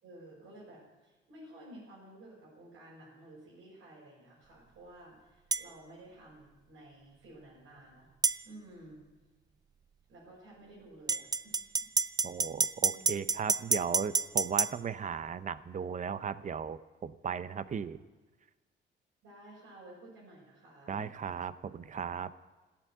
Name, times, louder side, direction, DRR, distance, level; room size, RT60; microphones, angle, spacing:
voice 1, 0.0-8.1 8.4-9.0 10.1-11.9 12.8-13.1 19.2-21.0, right 1 dB, 85° right, -8 dB, 6.0 m, -53 dB
sound 1, 5.5-5.7 8.2-8.4 11.1-14.7, right 4 dB, 20° right, 0.4 m, -28 dB
voice 2, 12.2-18.0 20.9-22.3, right 7 dB, 40° right, 14 dB, 0.7 m, -36 dB
14.0 x 9.0 x 9.2 m, 1.2 s
cardioid pair, 90°, 20 cm